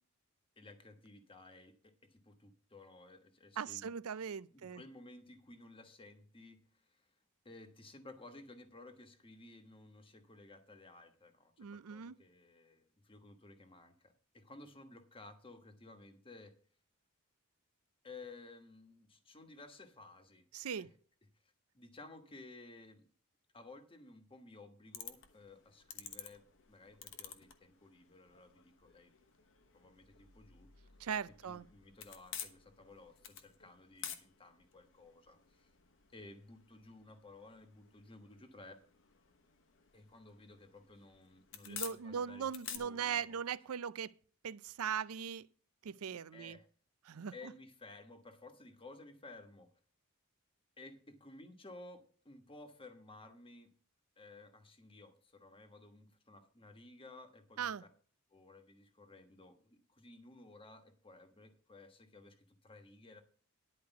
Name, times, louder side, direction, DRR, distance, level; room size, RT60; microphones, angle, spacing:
voice 1, 0.6-3.9 4.5-7.1 7.4-16.5 18.0-20.5 20.8-20.9 21.7-23.0 23.5-29.2 29.7-30.7 31.4-35.7 36.1-38.8 39.9-43.4 46.3-46.6 47.3-49.7 50.8-53.7 54.2-57.7 58.3-63.2, left 2 dB, 25° left, 1.3 m, -56 dB
voice 2, 3.6-4.8 11.6-12.2 20.5-20.9 31.0-31.7 41.6-44.1 44.4-45.5 45.8-46.6 47.1-47.3 57.6-57.8, right 7 dB, 70° right, 0.5 m, -39 dB
sound 1, 24.9-42.8, left 8 dB, 60° left, 1.1 m, -52 dB
11.0 x 4.8 x 8.1 m
head